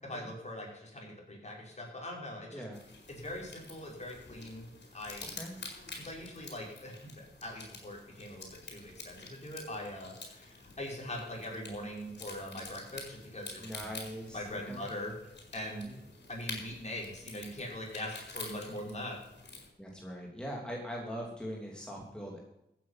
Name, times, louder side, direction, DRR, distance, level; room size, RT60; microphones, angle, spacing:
voice 1, 0.0-2.6 3.1-5.4 6.0-13.9 14.3-15.1 15.5-15.9 16.3-19.2, left 1 dB, 40° left, -2 dB, 5.7 m, -42 dB
sound 1, 2.7-19.7, left 3 dB, 75° left, 4.5 m, -48 dB
voice 2, 13.6-14.9 15.7-16.0 19.8-22.4, equal, 5° left, -2 dB, 3.0 m, -41 dB
15.5 x 9.3 x 5.8 m, 0.87 s
wide cardioid pair, 75°, 18 cm